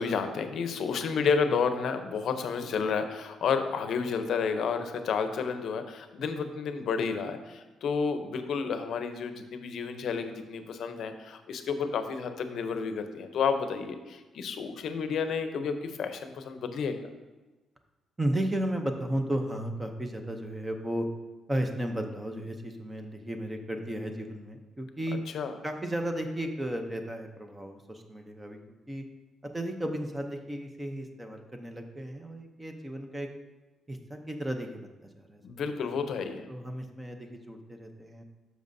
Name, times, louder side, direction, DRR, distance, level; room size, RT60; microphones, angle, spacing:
voice 1, 0.0-16.9 25.3-25.5 35.4-36.5, left 5 dB, 55° left, 8 dB, 0.7 m, -31 dB
voice 2, 18.2-21.1 21.5-25.2 25.6-28.6 28.9-29.0 29.5-33.3 33.9-34.9 35.2-35.4 35.8-35.9 36.5-38.2, right 1 dB, 10° right, 5 dB, 0.6 m, -34 dB
10.5 x 6.3 x 2.7 m, 1.2 s
cardioid pair, 180°, 0 cm